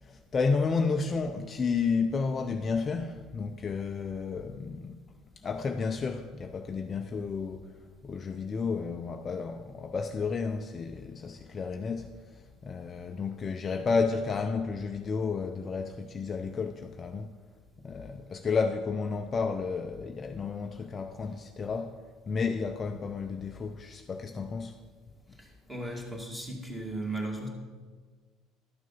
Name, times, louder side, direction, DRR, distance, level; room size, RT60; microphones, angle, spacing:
voice 1, 0.0-5.0 5.4-17.3 17.8-22.0 22.3-24.8, left 5 dB, 25° left, 0.5 m, -32 dB
voice 2, 25.3-27.5, right 2 dB, 15° right, 2.2 m, -36 dB
12.0 x 6.4 x 5.5 m
cardioid pair, 140°, 0 cm